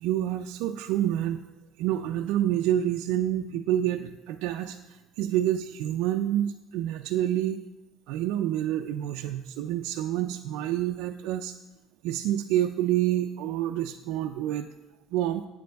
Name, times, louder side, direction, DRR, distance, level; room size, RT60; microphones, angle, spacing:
voice 1, 0.0-1.4 1.8-7.6 8.1-11.5 12.0-14.7 15.1-15.5, right 12 dB, 70° right, 4 dB, 0.4 m, -28 dB
13.0 x 8.6 x 3.4 m, 1.1 s
cardioid pair, 160°, 0 cm